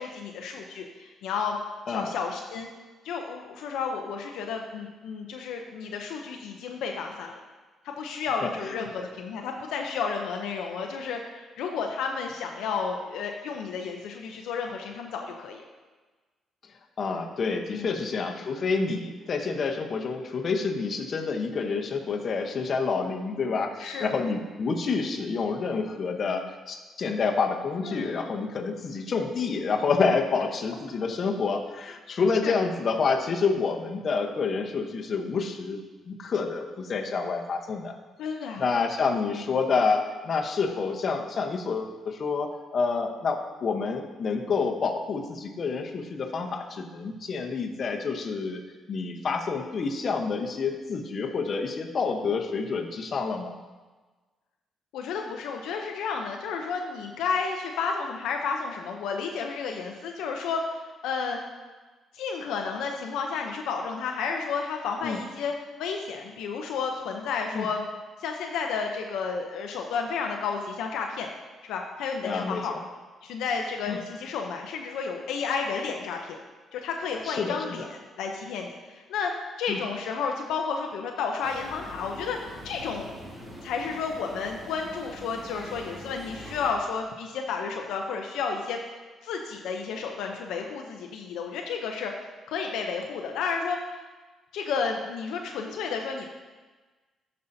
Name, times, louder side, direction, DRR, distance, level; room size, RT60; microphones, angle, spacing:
voice 1, 0.0-1.6 1.9-2.7 3.0-7.4 7.8-15.6 17.7-17.9 23.8-24.1 27.8-28.4 32.4-32.6 38.2-38.7 54.9-61.4 62.1-67.8 68.2-71.3 71.7-72.7 73.2-76.4 76.7-79.3 79.6-83.1 83.6-88.8 89.2-92.1 92.5-93.8 94.5-96.3, left 5 dB, 85° left, 2 dB, 0.6 m, -32 dB
voice 2, 17.0-35.8 36.1-38.0 38.6-48.6 48.9-53.5 65.0-65.2 67.5-67.7 72.2-72.8 73.9-74.0 77.2-77.6 79.7-79.8, left 4 dB, 50° left, 3 dB, 0.9 m, -28 dB
sound 1, 81.4-86.7, equal, 30° right, 2.3 m, -43 dB
12.5 x 5.4 x 2.7 m, 1.3 s
cardioid pair, 90°, 0 cm